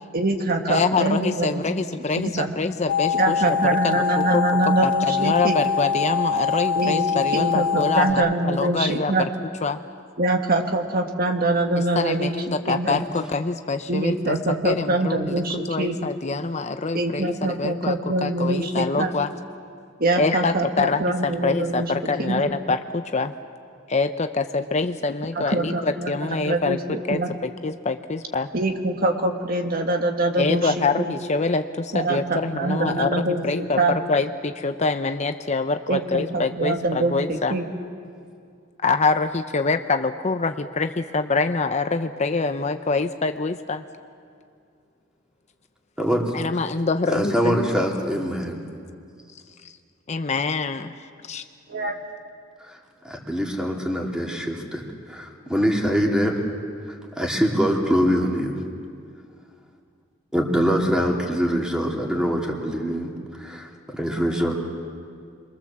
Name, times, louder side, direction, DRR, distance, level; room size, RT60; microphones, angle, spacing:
voice 1, 0.1-1.7 2.2-2.5 3.1-5.6 6.8-9.3 10.2-12.3 12.7-13.0 13.9-16.0 16.9-19.1 20.0-21.9 22.2-22.5 25.4-27.3 28.5-31.1 31.9-34.0 35.9-37.7 51.7-52.0, right 2 dB, 50° right, 4 dB, 1.8 m, -24 dB
voice 2, 0.7-9.1 9.6-9.8 11.9-14.4 14.6-15.4 15.7-19.3 20.2-23.3 23.9-28.5 30.4-33.8 34.1-37.5 38.8-43.8 46.3-47.7 50.1-51.4, left 3 dB, 35° left, 8 dB, 0.7 m, -25 dB
sound 1, 2.9-8.1, left 6 dB, 70° left, 1.6 m, -24 dB
voice 3, 47.1-48.6 51.7-51.9 52.6-52.8 53.0-54.8 55.1-56.3 57.2-58.5 60.3-63.1 63.4-64.6, equal, 5° right, -1 dB, 3.0 m, -23 dB
27.0 x 22.5 x 7.4 m, 2.3 s
head